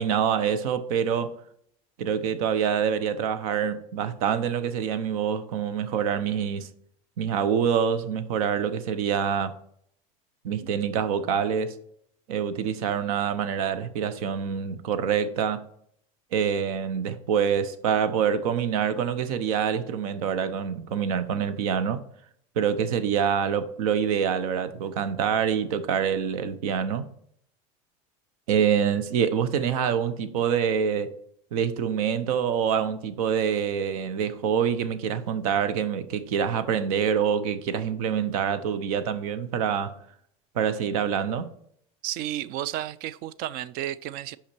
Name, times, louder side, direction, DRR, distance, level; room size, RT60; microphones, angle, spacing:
voice 1, 0.0-1.3 2.0-6.7 7.2-9.5 10.4-11.8 12.3-15.6 16.3-22.0 22.6-27.1 28.5-31.1 31.5-39.9 40.5-41.5, right 7 dB, 85° right, 0.7 m, -26 dB
voice 2, 42.0-44.4, right 12 dB, 55° right, 0.4 m, -32 dB
5.8 x 5.0 x 4.4 m
supercardioid pair, 110°, 18 cm